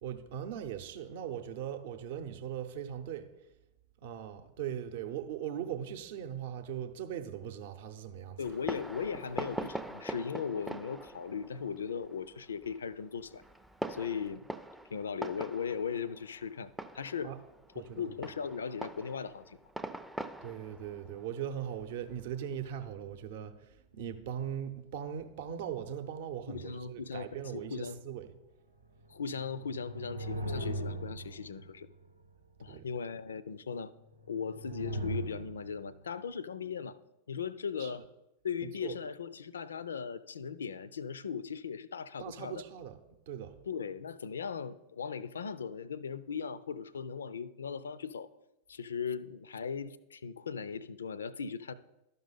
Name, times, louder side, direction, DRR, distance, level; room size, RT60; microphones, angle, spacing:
voice 1, 0.0-3.3 4.0-8.4 17.2-17.4 17.7-18.0 20.4-28.3 32.7-32.9 37.8-38.0 38.6-38.9 42.2-43.0 43.3-43.6, right 9 dB, 55° right, 0.7 m, -40 dB
voice 2, 8.4-13.4 13.9-14.5 14.9-17.3 17.9-19.6 26.5-27.3 27.5-28.0 29.1-31.9 32.6-33.9 34.3-37.0 37.3-38.0 38.4-42.6 43.7-48.3 48.7-51.7, left 6 dB, 70° left, 0.3 m, -38 dB
Fireworks, 8.4-22.6, right 1 dB, 5° right, 0.4 m, -44 dB
sound 1, 29.0-32.0 34.1-36.0, right 1 dB, 85° right, 0.8 m, -39 dB
12.0 x 5.4 x 4.0 m
figure-of-eight pair, 90°, 0 cm